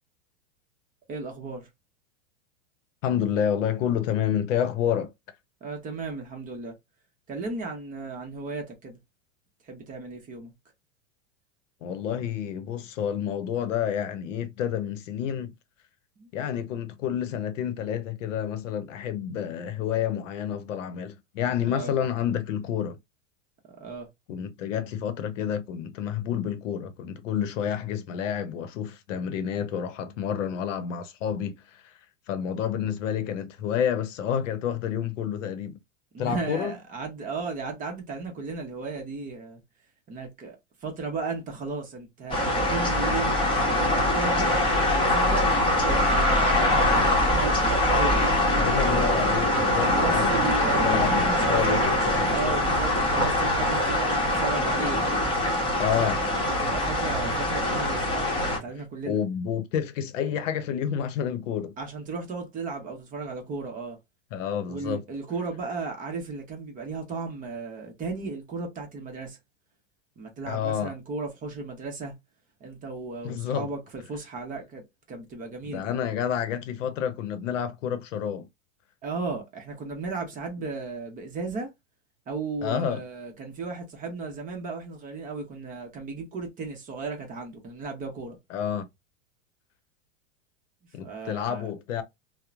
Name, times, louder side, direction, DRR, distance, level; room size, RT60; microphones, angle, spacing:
voice 1, 1.1-1.7 5.6-6.7 7.3-9.0 9.6-10.5 16.2-16.3 21.7-21.9 23.7-24.1 36.1-39.6 40.1-43.4 43.7-47.7 47.9-48.2 49.8-55.0 55.9-59.2 61.8-64.0 64.7-69.4 70.2-72.1 72.6-75.8 79.0-81.7 82.3-88.4 91.0-91.7, right 4 dB, 20° right, 0.7 m, -35 dB
voice 2, 3.0-5.1 11.8-15.5 16.3-23.0 24.3-31.9 32.3-35.8 36.2-36.7 48.6-50.3 50.8-52.2 55.8-56.2 59.1-61.7 64.3-65.0 70.5-70.9 73.2-73.7 75.7-78.5 82.6-83.0 88.5-88.9 90.9-92.0, left 9 dB, 80° left, 0.7 m, -29 dB
sound 1, 42.3-58.6, left 1 dB, 15° left, 1.0 m, -23 dB
2.9 x 2.1 x 2.3 m
supercardioid pair, 135°, 37 cm